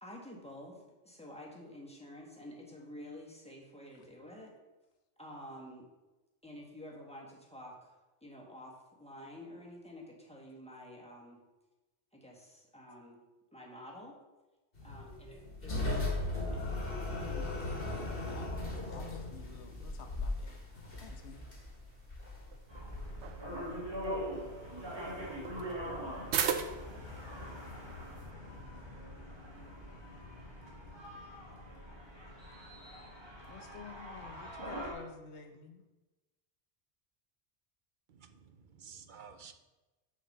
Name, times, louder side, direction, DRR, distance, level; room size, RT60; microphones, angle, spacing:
voice 1, 0.0-4.5 5.2-5.9 6.4-7.9 8.2-11.4 12.1-13.2 13.5-14.2 14.8-16.7, left 1 dB, 5° left, -2 dB, 1.5 m, -50 dB
sound 1, 14.8-23.9, left 2 dB, 55° left, 2.0 m, -38 dB
sound 2, 15.8-28.3, right 7 dB, 85° right, 1.0 m, -43 dB
voice 2, 17.1-20.6 21.0-21.4 33.5-35.9, left 6 dB, 80° left, 6 dB, 1.2 m, -50 dB
sound 3, 22.7-34.9, equal, 25° right, 1.6 m, -43 dB
voice 3, 38.2-39.5, right 6 dB, 55° right, 9 dB, 0.7 m, -52 dB
6.4 x 5.1 x 6.6 m, 1.1 s
omnidirectional pair, 1.1 m